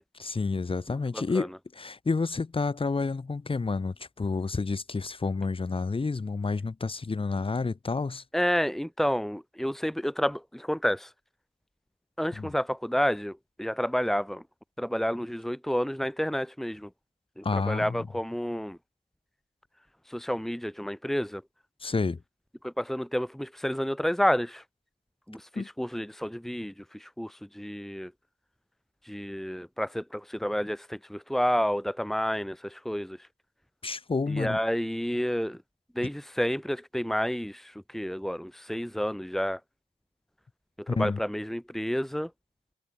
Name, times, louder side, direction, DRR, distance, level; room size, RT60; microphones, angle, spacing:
voice 1, 0.2-8.2 12.4-12.5 17.4-18.1 21.8-22.2 25.5-25.7 33.8-34.6 36.0-36.1 40.9-41.2, left 4 dB, 25° left, 4.9 m, -30 dB
voice 2, 1.1-1.5 8.3-11.1 12.2-14.4 14.8-16.9 17.4-18.8 20.1-21.4 22.6-24.6 25.3-28.1 29.0-33.2 34.3-35.6 35.9-39.6 40.9-42.3, equal, ahead, 3.0 m, -30 dB
cardioid pair, 90°, 20 cm